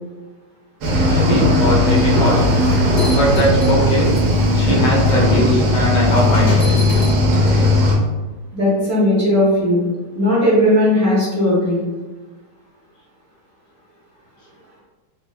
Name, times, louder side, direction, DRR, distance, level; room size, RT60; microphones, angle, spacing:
Cricket / Waves surf, 0.8-7.9, left 1 dB, 70° right, 1.2 m, -16 dB
voice 1, 1.0-2.4 3.1-4.1 4.5-6.6, left 1 dB, 85° left, -2 dB, 1.5 m, -19 dB
sound 1, 2.4-4.2 5.0-5.1 6.2-7.2, equal, 55° left, 1.2 m, -30 dB
voice 2, 8.5-9.9 10.1-11.8, left 1 dB, 55° right, -7 dB, 0.8 m, -16 dB
4.0 x 2.1 x 2.3 m, 1.2 s
omnidirectional pair, 1.9 m